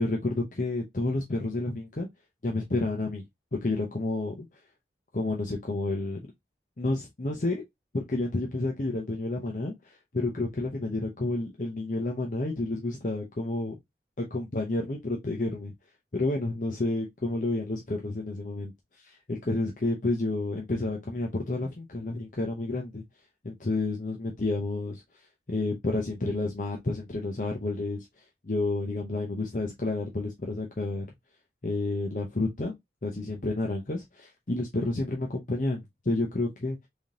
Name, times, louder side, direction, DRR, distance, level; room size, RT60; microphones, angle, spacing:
voice 1, 0.0-2.1 2.4-3.2 3.6-4.5 5.1-6.2 6.8-7.6 7.9-13.8 14.2-15.7 16.1-18.7 19.0-23.0 23.4-25.0 25.5-28.1 28.4-31.1 31.6-32.7 33.0-36.8, left 2 dB, 45° left, 0.7 m, -30 dB
3.7 x 3.5 x 2.8 m
head